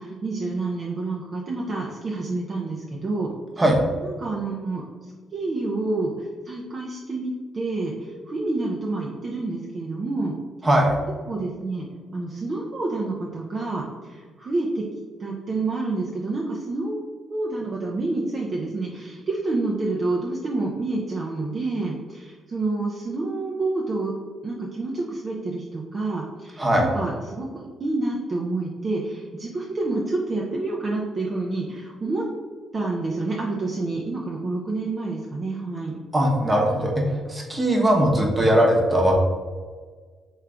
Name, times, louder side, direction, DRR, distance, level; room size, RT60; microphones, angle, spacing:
voice 1, 0.0-3.3 4.0-10.4 11.3-11.9 12.1-14.9 15.2-17.0 17.3-24.1 24.4-32.2 32.7-36.0, right 2 dB, 40° right, -3 dB, 0.6 m, -28 dB
voice 2, 10.6-11.0 26.6-26.9 36.1-37.0 37.3-39.1, right 1 dB, 20° right, 0 dB, 1.0 m, -19 dB
3.7 x 3.2 x 3.4 m, 1.5 s
cardioid pair, 90°, 0 cm